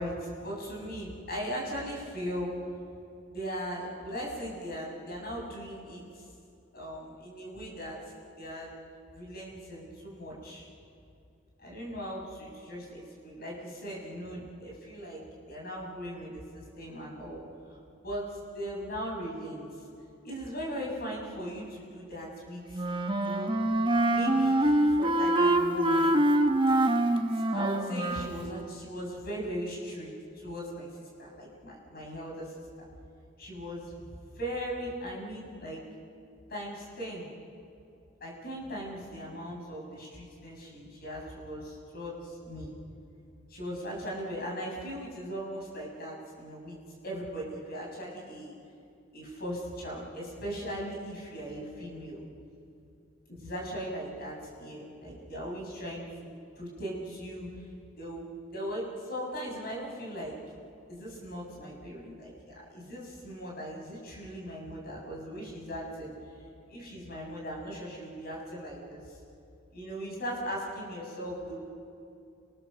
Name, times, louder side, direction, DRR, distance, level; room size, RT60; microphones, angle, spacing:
voice 1, 0.0-2.5 3.3-6.3 6.7-8.1 8.4-8.7 9.1-10.7 11.6-17.4 18.0-19.6 20.2-22.8 23.2-23.6 24.1-26.2 27.1-32.5 33.4-34.1 34.3-35.8 36.5-37.3 38.2-42.7 43.5-46.8 47.0-48.5 49.1-52.2 53.3-57.6 58.0-60.3 60.9-66.1 66.7-69.2 69.7-71.6, equal, 50° left, -3 dB, 6.5 m, -39 dB
Wind instrument woodwind instrument, 22.7-28.4, right 1 dB, 25° right, 1.2 m, -25 dB
29.5 x 20.5 x 6.9 m, 2.6 s
head